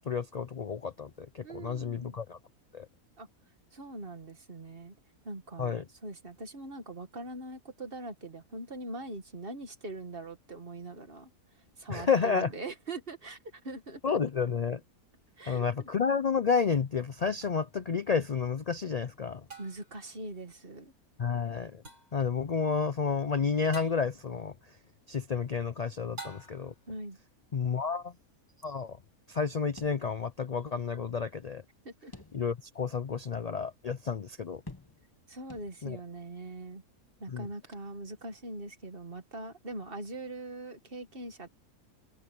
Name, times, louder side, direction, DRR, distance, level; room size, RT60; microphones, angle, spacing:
voice 1, 0.1-1.1 1.3-2.4 2.7-2.9 5.6-5.8 11.9-12.5 14.0-14.8 15.5-19.4 21.2-21.8 22.1-24.5 25.1-26.7 27.5-28.1 28.6-29.0 29.3-31.6 32.3-34.6 35.8-36.0 37.3-37.5, left 5 dB, 75° left, 0.3 m, -30 dB
voice 2, 1.4-2.2 3.2-3.3 3.7-4.9 5.2-11.3 11.8-13.4 13.6-14.2 15.4-15.9 19.6-20.9 26.9-27.2 31.8-32.1 35.3-36.8 37.2-41.5, right 2 dB, 40° right, 2.0 m, -42 dB
sound 1, 17.4-17.5 19.5-20.0 21.8-22.2 23.7-24.1 26.2-26.8, right 3 dB, 80° right, 7.8 m, -47 dB
sound 2, 29.8-30.6 30.9-31.0 32.1-32.8 33.3-33.4 34.7-35.2 35.5-36.1, left 2 dB, 15° left, 1.0 m, -50 dB
omnidirectional pair, 1.5 m